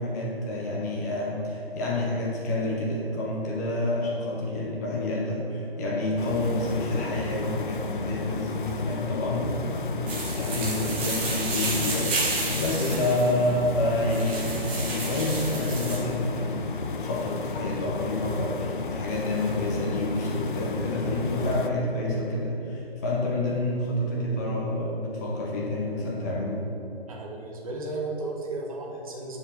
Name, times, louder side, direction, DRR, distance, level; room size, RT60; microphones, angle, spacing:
voice 1, 0.0-16.7 17.0-26.6, left 1 dB, 15° left, -3 dB, 0.9 m, -28 dB
sound 1, 6.2-21.7, left 4 dB, 55° left, 0.5 m, -33 dB
sound 2, 10.1-16.0, right 2 dB, 10° right, 0.7 m, -31 dB
voice 2, 27.1-29.4, right 2 dB, 35° right, 0 dB, 1.0 m, -34 dB
8.7 x 4.8 x 4.3 m, 3.0 s
figure-of-eight pair, 140°, 31 cm